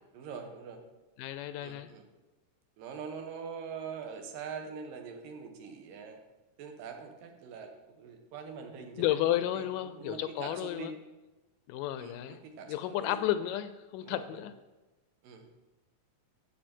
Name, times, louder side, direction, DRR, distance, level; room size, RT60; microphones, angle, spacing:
voice 1, 0.1-0.8 1.6-2.0 2.8-6.2 6.6-10.9 12.0-13.2 14.0-14.5 15.2-15.5, right 6 dB, 80° right, 4 dB, 2.8 m, -43 dB
voice 2, 1.2-1.9 9.0-10.9 11.7-12.4 12.7-14.5, left 12 dB, 80° left, 12 dB, 2.0 m, -32 dB
12.5 x 7.9 x 4.4 m, 1.1 s
omnidirectional pair, 3.9 m